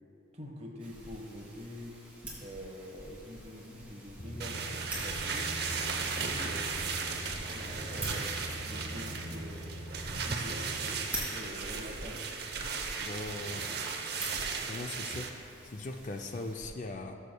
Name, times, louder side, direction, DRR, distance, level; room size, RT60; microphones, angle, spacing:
voice 1, 0.3-2.0 2.4-5.5 6.0-6.8 7.4-12.3, equal, 35° right, 0 dB, 1.2 m, -45 dB
sound 1, 0.8-16.7, right 1 dB, 10° right, 2.0 m, -46 dB
sound 2, 4.2-11.0, equal, 60° left, 1.0 m, -43 dB
sound 3, 4.4-15.3, right 5 dB, 55° right, 0.7 m, -36 dB
voice 2, 13.0-13.7 14.7-17.2, left 2 dB, 40° left, 5 dB, 0.4 m, -40 dB
19.5 x 6.9 x 2.2 m, 2.8 s
head